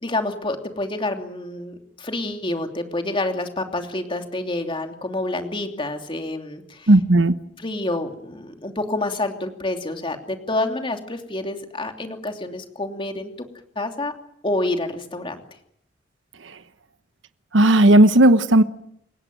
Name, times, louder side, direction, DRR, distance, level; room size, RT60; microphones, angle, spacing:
voice 1, 0.0-6.9 7.6-13.3 13.7-14.1 14.4-15.4, left 2 dB, 25° left, 5 dB, 2.9 m, -28 dB
voice 2, 6.9-7.3 17.5-18.6, right 1 dB, 75° right, 11 dB, 1.1 m, -13 dB
29.0 x 17.0 x 9.2 m, 0.73 s
head